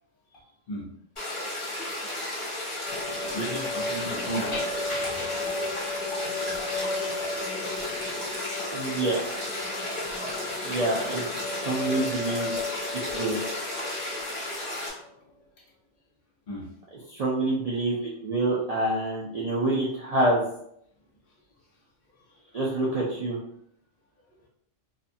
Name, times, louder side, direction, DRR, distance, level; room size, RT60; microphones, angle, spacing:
voice 1, 0.3-0.9 1.4-1.6 3.3-6.2 16.5-16.7 22.3-22.4, right 1 dB, 50° left, -3 dB, 0.9 m, -36 dB
sound 1, 1.2-14.9, left 1 dB, 25° left, 1.1 m, -33 dB
sound 2, 2.9-15.1, left 3 dB, 85° left, 1.0 m, -35 dB
voice 2, 8.7-9.2 10.6-12.5 13.1-13.4 17.1-20.4 22.5-23.4, right 2 dB, 85° right, -5 dB, 0.3 m, -27 dB
2.5 x 2.3 x 2.6 m, 0.70 s
omnidirectional pair, 1.3 m